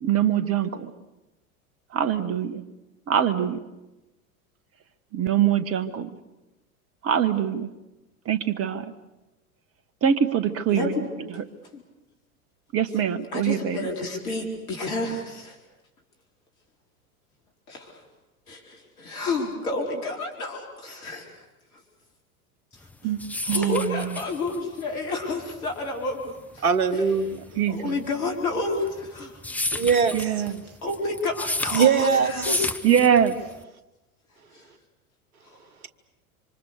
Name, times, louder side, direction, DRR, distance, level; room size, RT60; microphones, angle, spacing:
voice 1, 0.0-0.9 1.9-2.6 3.1-3.6 5.1-6.1 7.0-7.7 8.2-8.9 10.0-11.4 12.7-13.9 23.0-23.2 23.5-24.2 27.5-27.9 30.1-30.6 32.8-33.4, right 9 dB, 30° right, 14 dB, 1.5 m, -23 dB
voice 2, 10.7-11.3 11.7-11.8 13.3-15.6 17.7-18.0 18.5-21.3 23.4-26.6 26.9-27.1 27.7-29.3 30.8-32.6 34.5-34.6, left 2 dB, 70° left, 1 dB, 4.4 m, -30 dB
sound 1, 22.8-33.6, left 2 dB, 5° left, 0.9 m, -32 dB
voice 3, 26.6-27.5 29.7-30.2 31.7-32.5, right 6 dB, 70° right, 12 dB, 1.6 m, -21 dB
27.5 x 25.0 x 6.8 m, 1.0 s
figure-of-eight pair, 85°, 45 cm